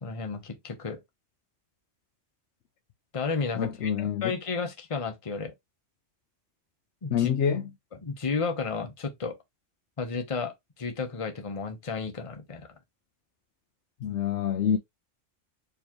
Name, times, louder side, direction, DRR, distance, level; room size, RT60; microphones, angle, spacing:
voice 1, 0.0-1.0 3.1-5.5 7.0-7.3 8.0-9.3 10.0-10.5 10.8-12.7, left 4 dB, 30° left, 0.9 m, -32 dB
voice 2, 3.5-4.3 7.1-7.7 14.0-14.8, left 8 dB, 90° left, 0.9 m, -26 dB
4.6 x 3.2 x 2.9 m
omnidirectional pair, 1.1 m